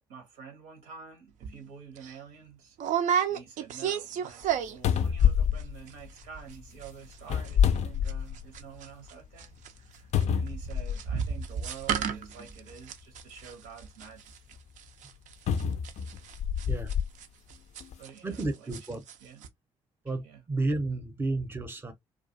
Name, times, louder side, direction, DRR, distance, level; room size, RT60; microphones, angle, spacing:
voice 1, 0.1-9.5 9.8-14.6 18.0-18.7 19.2-19.5 20.2-20.4, right 7 dB, 75° right, 0.8 m, -48 dB
sound 1, 1.4-1.6 2.0-2.1 2.8-5.0 5.2-5.6 5.9-6.0 6.2-6.6 6.8-9.1 9.4-18.4 18.7-19.2 19.4-19.5, right 8 dB, 55° right, 0.4 m, -32 dB
sound 2, 4.4-4.5 4.8-6.5 7.2-8.6 9.1-9.2 10.1-11.2 12.2-12.3 15.5-17.1 17.8-17.9, left 8 dB, 45° left, 0.4 m, -27 dB
voice 2, 18.2-19.0 20.0-21.9, right 2 dB, 15° right, 0.6 m, -32 dB
2.3 x 2.3 x 2.6 m
hypercardioid pair, 50°, 16 cm